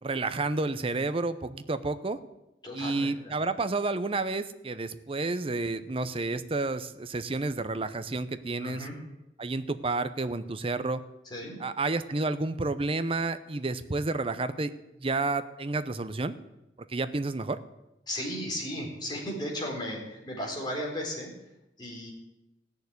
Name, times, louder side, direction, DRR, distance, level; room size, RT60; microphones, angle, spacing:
voice 1, 0.0-2.2 2.7-8.9 9.4-11.0 11.6-14.7 15.0-16.3 16.9-17.6, right 3 dB, 30° right, 12 dB, 0.7 m, -30 dB
voice 2, 2.6-3.3 8.6-9.0 11.2-11.6 18.1-21.3 21.8-22.1, equal, 25° left, -2 dB, 4.0 m, -35 dB
15.5 x 6.9 x 9.6 m, 0.92 s
head